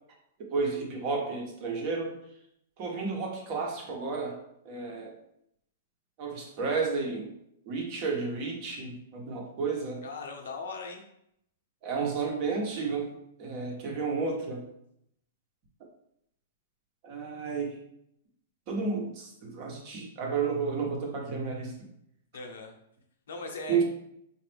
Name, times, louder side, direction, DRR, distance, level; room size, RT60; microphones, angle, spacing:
voice 1, 0.4-2.1 2.8-4.4 4.6-5.1 6.2-7.3 7.6-10.0 11.8-13.1 13.4-14.6 17.0-17.8 18.7-21.7 23.7-23.8, right 4 dB, 40° right, 0 dB, 1.0 m, -32 dB
voice 2, 10.0-11.0 22.3-22.7 23.3-23.8, left 3 dB, 85° left, 2 dB, 0.8 m, -39 dB
4.0 x 2.5 x 3.4 m, 0.76 s
hypercardioid pair, 150°, 0 cm